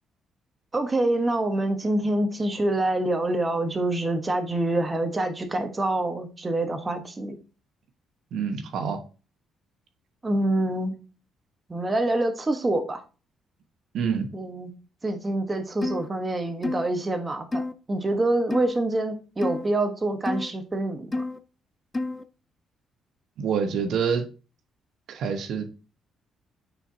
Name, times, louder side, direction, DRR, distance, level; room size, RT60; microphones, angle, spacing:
voice 1, 0.7-7.4 10.2-11.0 11.7-13.0 14.3-14.7 15.0-21.2, right 2 dB, 20° right, 6 dB, 1.1 m, -26 dB
voice 2, 8.3-9.0 13.9-14.3 23.4-24.2 25.1-25.7, right 6 dB, 70° right, 7 dB, 1.1 m, -26 dB
sound 1, 15.8-16.1 16.6-16.9 17.5-17.7 18.5-18.8 19.4-19.7 20.3-20.5 21.1-21.4 21.9-22.2, left 2 dB, 20° left, 0.4 m, -29 dB
8.9 x 4.4 x 2.7 m, 0.33 s
cardioid pair, 120°, 0 cm